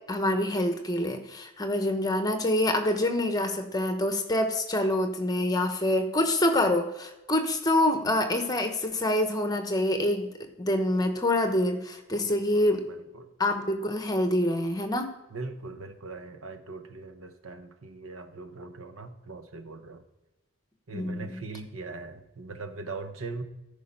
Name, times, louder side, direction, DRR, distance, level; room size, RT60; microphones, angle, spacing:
voice 1, 0.0-10.3 10.6-12.8 13.4-15.1 20.9-21.4, left 1 dB, 15° left, 6 dB, 0.9 m, -26 dB
voice 2, 12.3-13.3 15.3-20.0 20.9-23.4, right 3 dB, 75° right, 8 dB, 1.0 m, -41 dB
14.0 x 5.2 x 5.4 m, 1.0 s
head